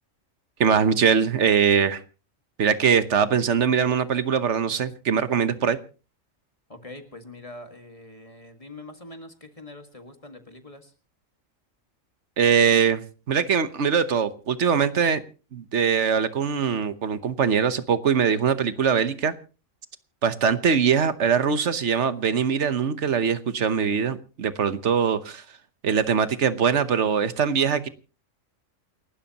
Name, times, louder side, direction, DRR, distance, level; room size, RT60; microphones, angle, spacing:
voice 1, 0.6-2.0 2.6-5.8 12.4-15.2 15.5-19.3 20.2-25.4 25.8-27.9, right 7 dB, 60° right, 1.3 m, -22 dB
voice 2, 6.7-10.9, left 2 dB, 25° left, 1.8 m, -43 dB
28.5 x 12.5 x 2.9 m
omnidirectional pair, 1.4 m